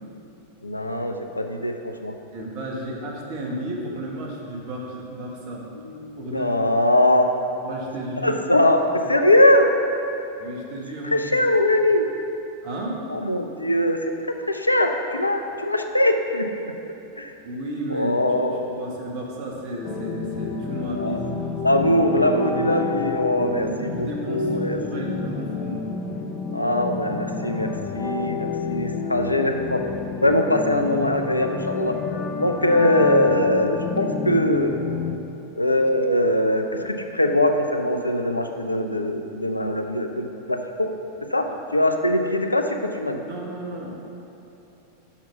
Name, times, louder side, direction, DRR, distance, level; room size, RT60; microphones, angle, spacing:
voice 1, 0.6-2.1 5.7-7.3 8.2-9.7 11.0-12.1 13.1-16.5 17.2-17.3 17.9-18.7 20.9-21.2 21.6-25.1 26.5-29.8 30.2-32.0 32.4-34.8 35.6-40.9 41.3-43.2, left 1 dB, 85° left, 5 dB, 0.5 m, -22 dB
voice 2, 2.3-5.6 6.2-6.6 7.6-8.4 9.2-9.3 10.4-11.4 12.6-13.0 17.4-21.7 23.5-26.0 43.1-43.9, right 1 dB, 45° right, -1 dB, 1.3 m, -33 dB
sound 1, 19.8-35.2, left 5 dB, 30° left, 0.5 m, -30 dB
5.9 x 5.7 x 5.7 m, 2.9 s
figure-of-eight pair, 90°, 0 cm